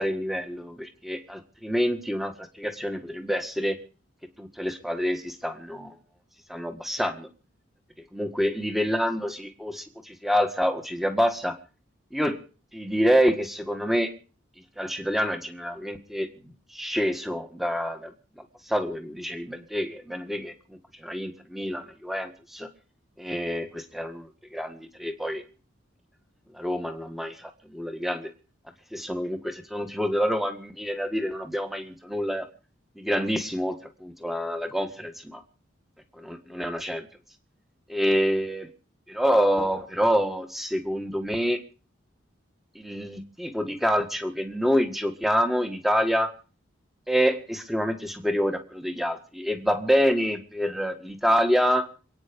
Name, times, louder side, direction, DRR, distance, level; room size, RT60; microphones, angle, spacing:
voice 1, 0.0-3.8 4.4-6.0 6.5-7.3 8.1-11.6 12.1-12.4 12.7-14.1 14.8-18.1 18.7-22.7 23.2-25.4 26.5-28.3 28.9-32.5 33.0-35.4 36.2-37.1 37.9-38.6 39.2-41.6 42.8-46.3 47.1-51.9, equal, ahead, 6 dB, 1.7 m, -27 dB
27.5 x 9.6 x 5.3 m, 0.38 s
head